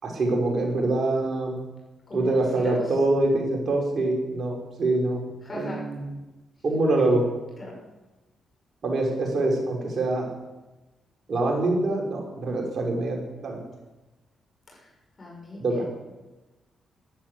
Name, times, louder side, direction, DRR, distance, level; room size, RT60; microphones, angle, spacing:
voice 1, 0.0-1.5 2.1-5.2 5.5-6.0 6.6-7.3 8.8-10.3 11.3-13.6 15.6-15.8, right 2 dB, 55° right, 1 dB, 5.0 m, -25 dB
voice 2, 2.1-2.9 5.4-5.8 7.6-7.8 14.7-14.9 15.2-15.8, left 2 dB, 35° left, -3 dB, 7.2 m, -38 dB
13.0 x 11.5 x 8.2 m, 1.1 s
supercardioid pair, 60°, 0 cm